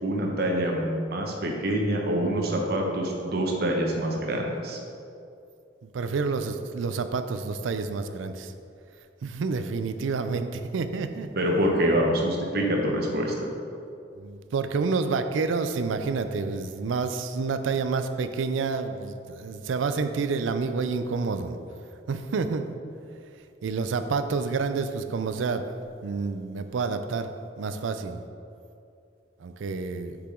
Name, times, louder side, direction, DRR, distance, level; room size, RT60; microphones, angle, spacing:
voice 1, 0.0-4.8 11.3-13.5, right 1 dB, 55° right, 1 dB, 0.9 m, -26 dB
voice 2, 5.8-8.5 9.2-11.3 14.2-21.6 22.1-22.7 23.6-25.6 26.0-27.3 27.6-28.2 29.4-30.2, right 4 dB, 85° right, 9 dB, 0.4 m, -29 dB
6.7 x 4.8 x 3.7 m, 2.5 s
head